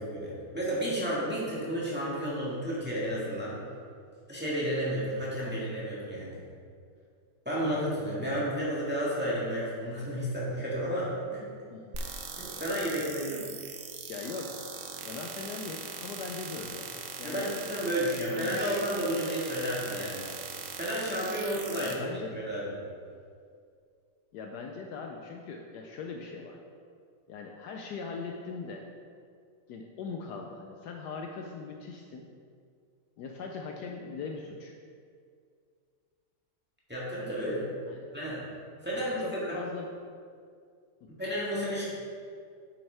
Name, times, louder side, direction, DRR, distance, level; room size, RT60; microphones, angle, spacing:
voice 1, 0.0-3.5 4.3-6.4 7.4-11.4 12.4-13.5 17.2-20.3 20.8-22.8 36.9-37.6 38.1-38.4 38.8-39.6 41.2-41.8, equal, 5° right, -7 dB, 1.3 m, -32 dB
sound 1, 11.9-21.9, right 5 dB, 85° right, 0.7 m, -40 dB
voice 2, 14.1-14.5 15.0-16.9 17.2-17.5 18.1-18.8 21.8-22.5 24.3-26.6 27.3-28.9 29.7-32.3 33.2-34.7 37.9-38.1 38.9-39.9 41.0-41.1, left 4 dB, 90° left, 2 dB, 0.9 m, -40 dB
8.0 x 7.1 x 3.3 m, 2.2 s
omnidirectional pair, 2.4 m